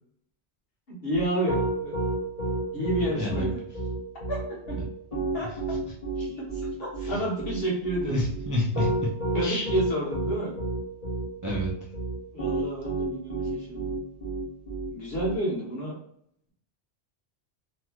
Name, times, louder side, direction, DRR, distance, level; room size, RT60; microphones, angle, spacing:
voice 1, 0.9-1.9 2.7-3.6 4.3-4.8 5.3-5.5 6.2-8.2 9.3-10.5 12.3-13.9 14.9-16.0, right 1 dB, 60° left, -4 dB, 1.3 m, -30 dB
Piano, 1.1-15.3, right 2 dB, 35° left, 1.1 m, -30 dB
voice 2, 3.2-3.5 5.4-5.8 7.0-7.2 8.0-9.1 9.4-9.7 11.4-11.7, left 1 dB, 30° right, -5 dB, 0.3 m, -29 dB
3.1 x 2.8 x 2.3 m, 0.67 s
omnidirectional pair, 1.2 m